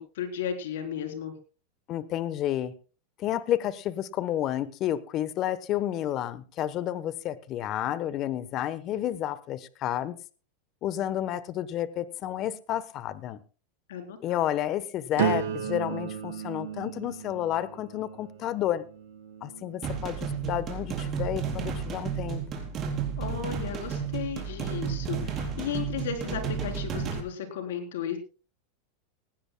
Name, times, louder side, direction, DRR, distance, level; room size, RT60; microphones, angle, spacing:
voice 1, 0.0-1.3 13.9-14.2 23.2-28.2, left 8 dB, 80° left, 5 dB, 3.6 m, -34 dB
voice 2, 1.9-2.7 3.2-10.2 10.8-13.4 14.2-18.8 19.4-22.7, left 12 dB, 40° left, 15 dB, 1.0 m, -31 dB
sound 1, 15.2-21.0 21.6-22.0, right 9 dB, 80° right, 3.4 m, -35 dB
sound 2, 19.8-27.2, right 7 dB, 30° right, 4.1 m, -32 dB
19.5 x 16.0 x 2.3 m, 0.35 s
supercardioid pair, 130°, 0 cm